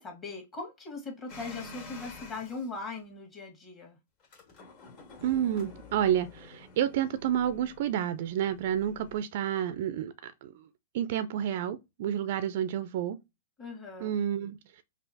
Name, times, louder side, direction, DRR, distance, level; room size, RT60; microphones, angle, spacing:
voice 1, 0.0-4.0 13.6-14.1, left 3 dB, 25° left, 1.5 m, -40 dB
sound 1, 1.3-2.7 4.2-9.2, left 3 dB, 40° left, 1.8 m, -49 dB
voice 2, 5.2-10.7 10.9-13.2 14.0-14.8, right 10 dB, 50° right, 0.4 m, -30 dB
5.5 x 2.4 x 2.7 m
figure-of-eight pair, 110°, 0 cm